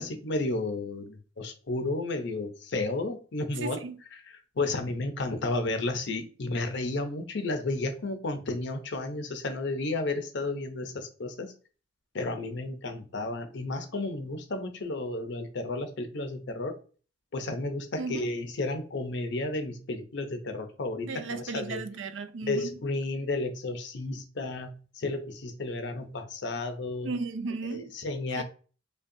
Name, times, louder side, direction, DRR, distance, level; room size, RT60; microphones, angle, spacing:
voice 1, 0.0-3.8 4.6-11.5 12.1-16.8 17.3-21.8 22.4-27.1 27.7-28.4, left 2 dB, 65° left, 0.6 m, -32 dB
voice 2, 3.6-4.0 18.0-18.3 21.0-22.8 27.0-27.9 28.4-28.5, right 4 dB, 70° right, 0.4 m, -35 dB
5.1 x 2.3 x 2.6 m
head